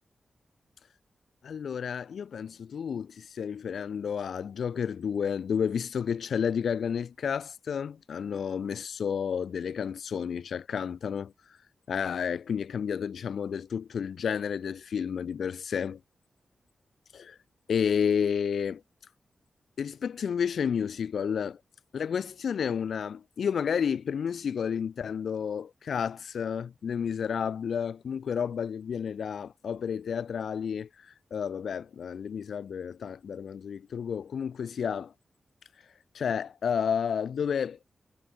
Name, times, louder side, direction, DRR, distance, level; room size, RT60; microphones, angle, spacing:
voice 1, 1.4-11.3 11.9-16.0 17.1-17.4 17.7-18.8 19.8-21.6 21.9-35.1 36.1-37.8, left 7 dB, 75° left, 2.0 m, -31 dB
wide cardioid pair, 160°, 0 cm